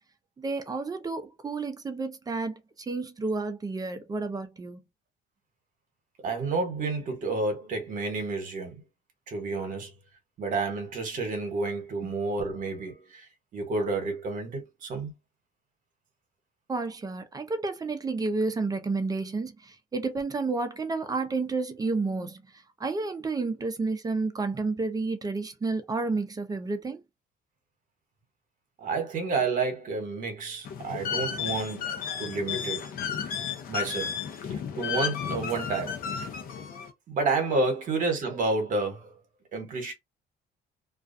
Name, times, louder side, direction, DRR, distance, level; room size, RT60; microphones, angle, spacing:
voice 1, 0.4-4.8 12.0-12.1 16.7-27.0, right 3 dB, 20° right, 0.5 m, -31 dB
voice 2, 6.2-8.8 9.3-9.9 10.4-15.1 28.8-32.8 33.7-34.1 34.5-36.2 37.1-39.2 39.5-39.9, right 3 dB, 50° right, 1.0 m, -30 dB
sound 1, 30.6-36.9, left 7 dB, 60° left, 0.6 m, -33 dB
2.4 x 2.2 x 2.5 m
cardioid pair, 110°, 17 cm